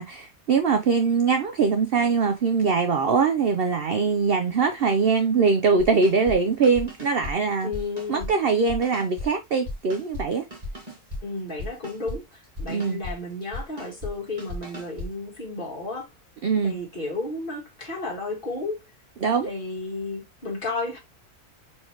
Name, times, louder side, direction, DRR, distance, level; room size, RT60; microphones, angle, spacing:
voice 1, 0.0-7.7 8.1-10.5 12.7-13.0 16.4-16.8 19.2-19.5, right 5 dB, 60° right, 0.6 m, -22 dB
sound 1, 5.8-6.4 6.6-7.3 7.6-8.3 8.7-9.3 9.6-10.2 10.5-11.2 11.6-12.2 12.6-13.1 13.4-14.1 14.4-15.1, left 1 dB, 25° right, 1.5 m, -35 dB
voice 2, 7.6-8.3 11.2-16.1 16.6-18.8 19.4-21.0, left 3 dB, 35° left, 1.8 m, -33 dB
4.5 x 3.3 x 2.9 m
omnidirectional pair, 1.6 m